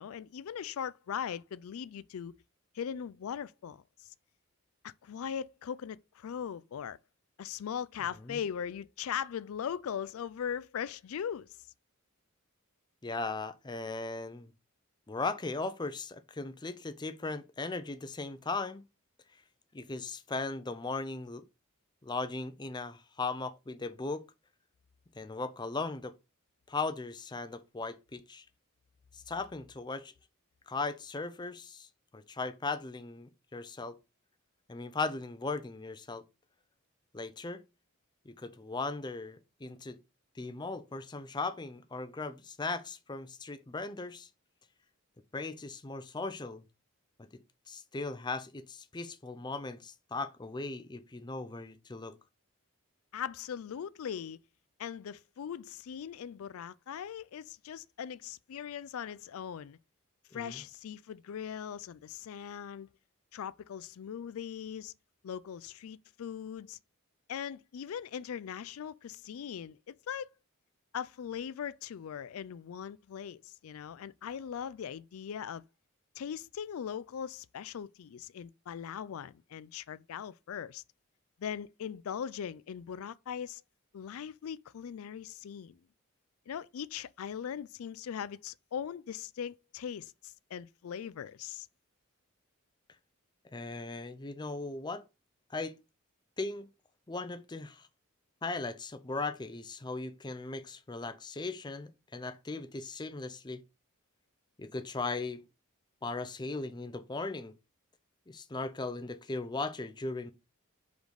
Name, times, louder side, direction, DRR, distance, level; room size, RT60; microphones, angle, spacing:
voice 1, 0.0-2.4 2.7-3.8 4.8-7.0 7.4-11.6 53.1-54.4 54.8-59.8 60.3-62.9 63.3-64.9 65.2-66.8 67.3-70.3 70.9-75.6 76.2-80.8 81.4-83.6 83.9-85.8 86.5-91.7, left 8 dB, 75° left, 0.4 m, -40 dB
voice 2, 13.0-14.5 15.1-18.8 19.7-21.4 22.0-24.2 25.1-26.1 26.7-28.4 29.1-30.1 30.7-31.9 32.1-34.0 34.7-36.2 37.1-37.6 38.3-40.0 40.4-44.3 45.3-46.6 47.2-47.3 47.7-52.2 60.3-60.6 93.5-95.0 95.5-95.8 96.4-96.7 97.1-97.9 98.4-103.6 104.6-105.4 106.0-107.5 108.3-110.3, left 3 dB, 20° left, 0.5 m, -38 dB
5.1 x 3.9 x 4.8 m
head